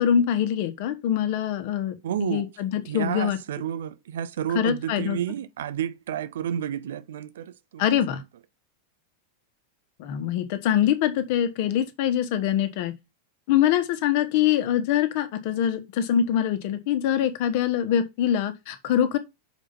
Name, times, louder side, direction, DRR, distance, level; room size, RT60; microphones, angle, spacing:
voice 1, 0.0-3.4 4.5-5.2 7.8-8.2 10.0-12.9 13.5-19.2, left 10 dB, 50° left, 1.3 m, -24 dB
voice 2, 2.0-2.5 2.9-8.0, right 9 dB, 60° right, 0.7 m, -31 dB
6.4 x 5.1 x 5.6 m
figure-of-eight pair, 90°, 0 cm